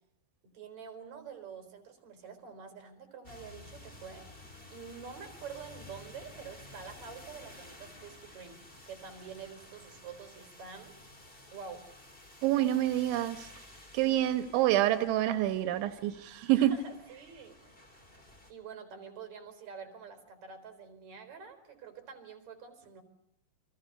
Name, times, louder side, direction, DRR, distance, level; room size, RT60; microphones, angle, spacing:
voice 1, 0.4-4.3 4.7-10.9 11.5-11.8 12.4-12.7 13.9-14.2 16.5-17.7 18.5-23.0, right 6 dB, 40° right, 8 dB, 5.0 m, -47 dB
sound 1, 3.2-18.5, left 2 dB, 15° left, 2.7 m, -53 dB
voice 2, 12.4-13.5 13.9-16.8, right 13 dB, 85° right, 10 dB, 3.5 m, -27 dB
29.0 x 24.0 x 6.7 m, 0.74 s
omnidirectional pair, 5.2 m